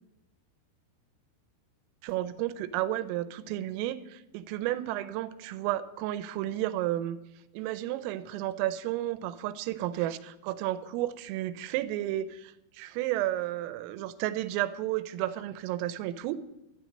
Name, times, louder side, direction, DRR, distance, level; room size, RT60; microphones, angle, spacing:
voice 1, 2.0-7.2 7.5-16.4, right 14 dB, 85° right, 13 dB, 3.3 m, -32 dB
13.0 x 12.0 x 6.5 m, 0.93 s
omnidirectional pair, 5.9 m